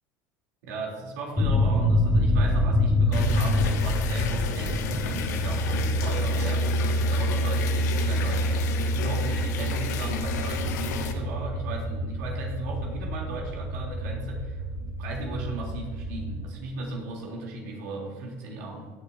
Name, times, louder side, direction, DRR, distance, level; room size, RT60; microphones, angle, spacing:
voice 1, 0.6-6.8 7.1-18.9, right 3 dB, 75° right, -2 dB, 3.7 m, -36 dB
sound 1, 1.4-16.4, equal, 5° left, 2.2 m, -26 dB
sound 2, 3.1-11.1, left 7 dB, 80° left, 1.3 m, -34 dB
17.0 x 8.9 x 2.9 m, 1.6 s
hypercardioid pair, 85°, 9 cm